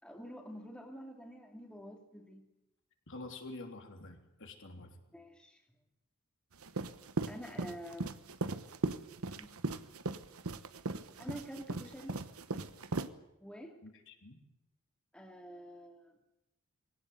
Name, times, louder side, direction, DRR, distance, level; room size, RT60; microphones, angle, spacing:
voice 1, 0.0-2.5 5.1-5.6 7.3-8.2 9.4-9.5 11.2-12.2 13.4-13.8 15.1-16.1, equal, 5° left, 1 dB, 2.6 m, -47 dB
voice 2, 3.1-4.9 13.8-14.4, left 2 dB, 60° left, 3 dB, 3.4 m, -48 dB
sound 1, 6.6-13.1, right 3 dB, 75° right, 1.2 m, -37 dB
21.5 x 18.0 x 9.5 m, 0.87 s
head